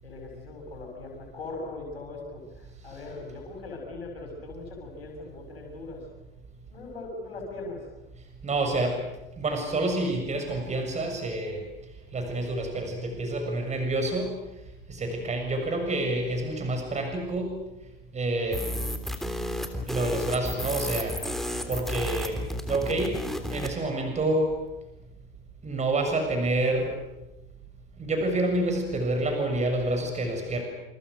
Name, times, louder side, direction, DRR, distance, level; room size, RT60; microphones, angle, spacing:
voice 1, 0.0-6.0 6.7-7.9, left 3 dB, 80° left, 1 dB, 6.9 m, -40 dB
voice 2, 8.4-9.0 9.4-11.6 12.1-14.3 14.9-17.5 18.1-18.8 19.9-21.2 21.7-23.2 23.5-24.5 25.6-26.9 28.0-30.6, right 2 dB, 25° right, 4 dB, 6.8 m, -28 dB
sound 1, 18.5-23.7, equal, ahead, 3.4 m, -32 dB
28.0 x 27.0 x 6.6 m, 0.98 s
figure-of-eight pair, 80°, 29 cm